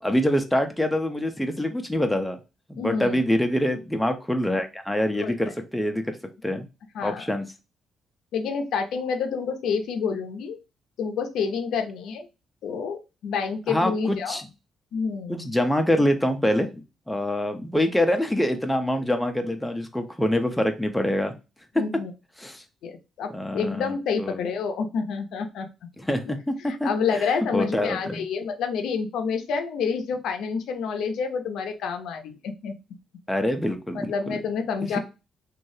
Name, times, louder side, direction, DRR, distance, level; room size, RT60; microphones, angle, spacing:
voice 1, 0.0-2.4 2.7-6.1 6.4-6.6 7.0-7.5 13.7-14.4 15.3-16.7 17.1-21.3 22.4-22.6 23.3-24.4 26.0-27.2 27.5-28.2 33.3-34.3 34.9-35.0, left 1 dB, 5° left, 5 dB, 0.5 m, -25 dB
voice 2, 2.8-3.2 5.2-5.4 6.9-7.3 8.3-10.6 11.0-12.3 12.6-14.4 14.9-15.5 21.8-22.1 22.8-25.7 26.3-26.4 26.7-32.8 33.9-35.0, left 5 dB, 80° left, 6 dB, 0.5 m, -28 dB
3.1 x 2.3 x 2.6 m, 0.28 s
cardioid pair, 90°, 0 cm